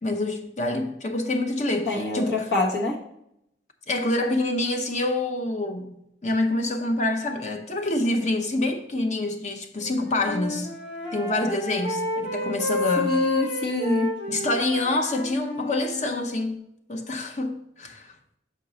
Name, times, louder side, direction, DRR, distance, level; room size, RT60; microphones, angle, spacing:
voice 1, 0.0-2.5 3.9-10.8 11.1-13.3 14.3-16.6 16.9-18.1, left 2 dB, 40° left, 0.7 m, -26 dB
voice 2, 1.9-3.0 13.0-14.2, left 1 dB, 70° left, 1.3 m, -25 dB
Wind instrument woodwind instrument, 9.8-16.3, left 2 dB, 85° left, 1.6 m, -30 dB
6.4 x 4.5 x 4.0 m
head